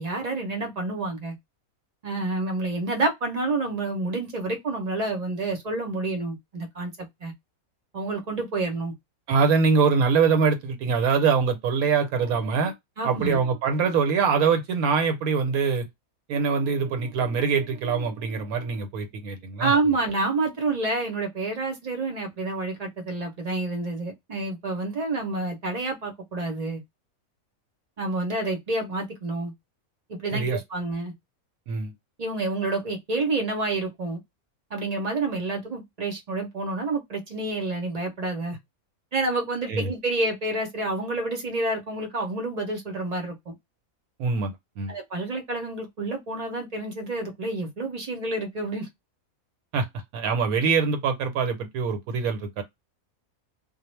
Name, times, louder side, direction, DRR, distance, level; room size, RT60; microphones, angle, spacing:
voice 1, 0.0-1.4 2.0-7.3 7.9-8.9 13.0-13.4 19.6-26.8 28.0-29.5 30.1-31.1 32.2-34.2 34.7-38.6 39.1-43.5 44.9-48.9, right 2 dB, 45° right, 0.5 m, -28 dB
voice 2, 9.3-12.7 13.0-15.9 16.3-19.7 30.3-30.6 31.7-31.9 39.7-39.9 44.2-44.9 49.7-49.9 50.1-52.6, right 5 dB, 85° right, 1.1 m, -24 dB
2.3 x 2.1 x 3.0 m
omnidirectional pair, 1.5 m